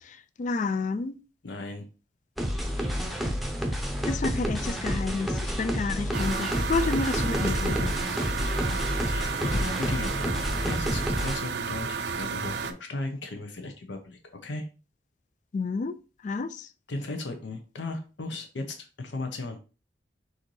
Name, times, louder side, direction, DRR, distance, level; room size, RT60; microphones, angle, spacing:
voice 1, 0.0-1.1 4.1-8.0 15.5-16.0 16.2-16.7, left 4 dB, 45° left, 0.3 m, -30 dB
voice 2, 1.4-1.9 8.4-14.7 16.9-19.6, left 2 dB, 80° left, 0.7 m, -36 dB
sound 1, 2.4-11.4, equal, ahead, 0.7 m, -29 dB
sound 2, 6.1-12.7, right 5 dB, 65° right, 0.5 m, -32 dB
6.3 x 2.6 x 3.2 m
head